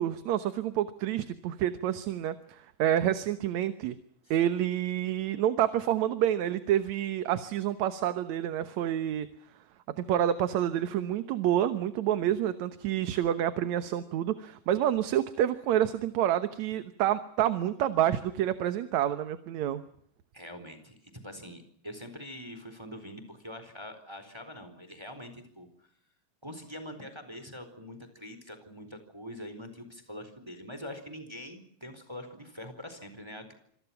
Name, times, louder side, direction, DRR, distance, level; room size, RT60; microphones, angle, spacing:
voice 1, 0.0-4.0 4.3-9.3 10.0-19.8, right 11 dB, 75° right, 11 dB, 2.4 m, -28 dB
voice 2, 20.3-25.7 26.4-33.5, left 1 dB, 10° right, 9 dB, 4.1 m, -44 dB
27.0 x 25.5 x 5.9 m, 0.63 s
omnidirectional pair, 3.3 m